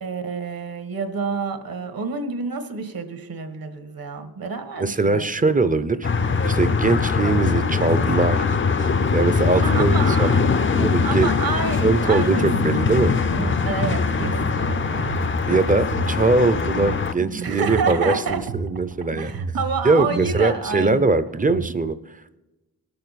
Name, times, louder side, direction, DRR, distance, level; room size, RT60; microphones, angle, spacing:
voice 1, 0.0-5.3 9.6-10.4 11.0-12.5 13.3-15.1 17.4-18.4 19.2-21.1, right 4 dB, 65° right, 7 dB, 1.5 m, -28 dB
voice 2, 4.8-6.0 6.4-11.3 11.8-13.1 15.5-19.3 19.8-21.9, right 3 dB, 20° right, 13 dB, 0.6 m, -21 dB
sound 1, 6.0-17.1, left 5 dB, 30° left, 0.5 m, -22 dB
sound 2, 12.5-21.7, right 4 dB, 85° right, 1.2 m, -32 dB
19.0 x 6.8 x 4.1 m, 1.1 s
cardioid pair, 80°, 38 cm